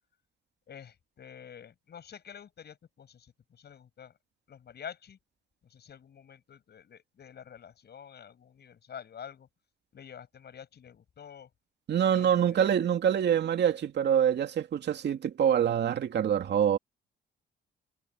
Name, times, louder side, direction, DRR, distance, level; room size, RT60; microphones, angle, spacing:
voice 1, 0.7-4.1 4.5-5.2 5.6-9.5 9.9-11.5 12.1-12.6, left 8 dB, 55° left, 8.0 m, -48 dB
voice 2, 11.9-16.8, right 9 dB, 60° right, 2.4 m, -25 dB
cardioid pair, 90°, 20 cm